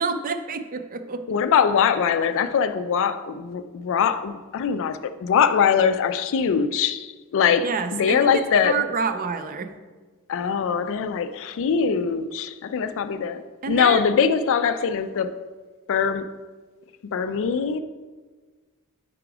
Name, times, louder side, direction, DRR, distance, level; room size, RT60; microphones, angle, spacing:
voice 1, 0.0-1.2 7.6-9.7 13.6-14.0, right 5 dB, 40° right, 0.4 m, -28 dB
voice 2, 1.3-8.8 10.3-15.3 15.9-16.3 17.1-17.8, left 7 dB, 60° left, 0.3 m, -22 dB
4.9 x 4.8 x 4.7 m
head